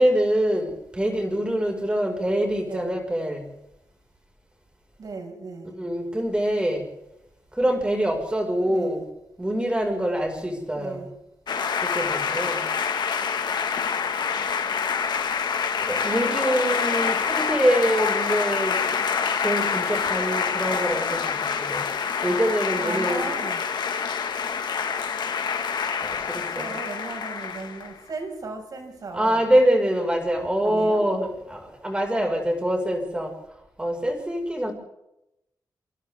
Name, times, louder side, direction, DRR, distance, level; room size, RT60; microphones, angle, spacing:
voice 1, 0.0-3.5 5.6-6.9 7.5-9.0 9.4-11.1 11.8-12.7 15.8-18.8 19.4-21.9 22.2-23.2 26.0-26.7 29.1-33.3 33.8-34.7, right 1 dB, 15° right, 2 dB, 5.5 m, -25 dB
voice 2, 5.0-5.7 8.6-9.0 10.7-11.1 16.1-17.7 22.7-23.6 26.3-29.5 30.6-31.0, right 3 dB, 60° right, 3 dB, 6.0 m, -37 dB
sound 1, 11.5-27.9, left 6 dB, 85° left, 1.8 m, -26 dB
27.5 x 26.0 x 3.7 m, 0.86 s
wide cardioid pair, 135°, 7 cm